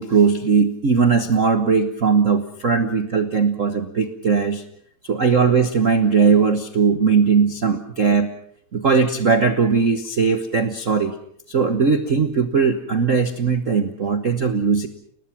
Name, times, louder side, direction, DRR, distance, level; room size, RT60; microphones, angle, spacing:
voice 1, 0.0-4.6 5.0-8.3 8.7-11.1 11.5-14.9, right 5 dB, 85° right, 7 dB, 0.7 m, -19 dB
30.0 x 19.5 x 5.9 m, 0.65 s
omnidirectional pair, 3.3 m